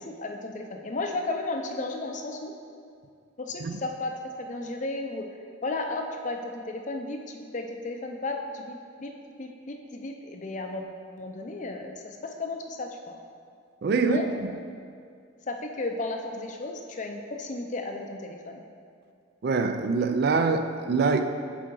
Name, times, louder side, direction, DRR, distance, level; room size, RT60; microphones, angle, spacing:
voice 1, 0.0-2.5 3.4-5.3 5.6-9.1 9.4-10.9 11.2-13.2 14.0-14.3 15.5-18.6, left 2 dB, 40° left, 3 dB, 0.5 m, -34 dB
voice 2, 13.8-14.2 19.4-21.2, right 4 dB, 50° right, 7 dB, 0.4 m, -24 dB
6.7 x 4.8 x 3.9 m, 2.3 s
head